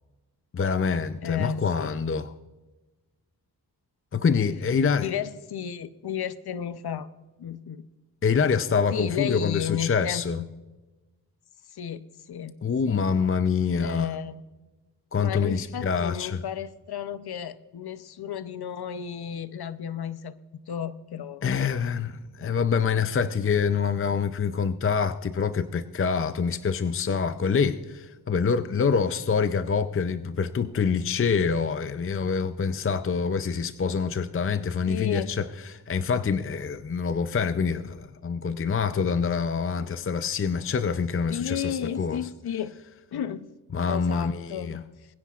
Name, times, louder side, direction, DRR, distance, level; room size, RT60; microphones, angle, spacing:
voice 1, 0.5-2.3 4.1-5.1 8.2-10.4 12.6-14.2 15.1-16.4 21.4-42.2 43.7-44.8, left 6 dB, 35° left, 11 dB, 0.5 m, -26 dB
voice 2, 1.2-1.9 5.0-7.1 7.4-7.8 8.9-10.5 11.7-12.5 12.8-13.0 13.8-14.4 15.2-21.7 22.4-22.6 22.9-23.0 34.9-35.3 41.3-42.8 43.1-43.5 43.9-44.7, left 9 dB, 70° left, 14 dB, 0.7 m, -33 dB
22.0 x 10.0 x 2.4 m, 1.2 s
cardioid pair, 60°, 39 cm